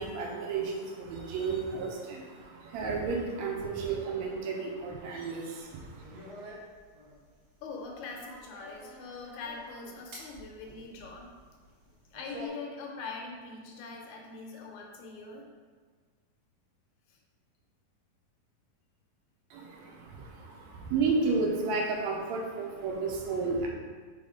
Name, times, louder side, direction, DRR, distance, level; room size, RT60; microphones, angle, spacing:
voice 1, 0.0-6.3 19.5-23.7, right 4 dB, 80° right, 0 dB, 1.6 m, -32 dB
sound 1, 5.6-12.5, right 1 dB, 55° right, 1.1 m, -50 dB
voice 2, 7.6-11.3 12.1-15.4 17.1-17.2, left 4 dB, 75° left, 1 dB, 1.8 m, -42 dB
4.9 x 3.9 x 4.9 m, 1.5 s
omnidirectional pair, 3.9 m